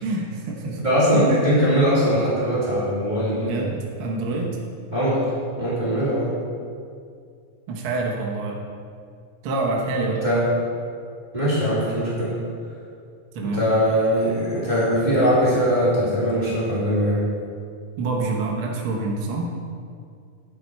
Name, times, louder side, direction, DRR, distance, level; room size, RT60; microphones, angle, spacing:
voice 1, 0.0-0.8 1.1-1.2 3.3-4.6 7.7-8.6 9.4-10.2 13.3-13.6 18.0-19.4, right 3 dB, 65° right, -2 dB, 1.3 m, -26 dB
voice 2, 0.8-3.5 4.9-5.2 5.6-6.3 10.2-10.4 11.3-12.3 13.4-17.2, equal, 15° right, -10 dB, 2.7 m, -21 dB
10.0 x 8.5 x 4.6 m, 2.3 s
omnidirectional pair, 3.9 m